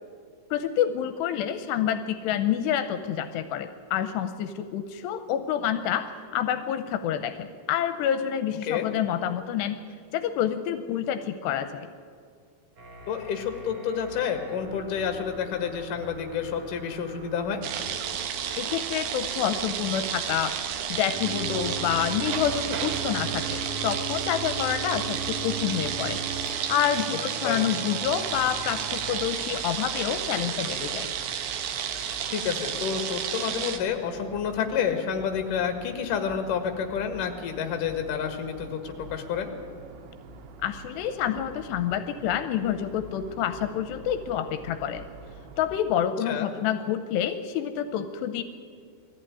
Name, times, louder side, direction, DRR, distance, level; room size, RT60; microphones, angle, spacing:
voice 1, 0.5-6.1 6.3-9.8 10.1-11.9 18.6-20.5 20.9-26.2 26.7-31.1 40.6-45.0 45.6-48.4, left 10 dB, 85° left, 10 dB, 2.9 m, -28 dB
sound 1, 12.8-29.3, right 3 dB, 45° right, 4.2 m, -39 dB
voice 2, 13.1-17.6 27.4-27.8 32.3-39.5 46.3-46.5, left 7 dB, 60° left, 6 dB, 2.9 m, -29 dB
sound 2, 17.6-33.8, right 9 dB, 75° right, 3.1 m, -32 dB
sound 3, 28.0-45.8, right 3 dB, 90° right, 3.5 m, -46 dB
20.0 x 14.5 x 9.8 m, 2.1 s
omnidirectional pair, 4.9 m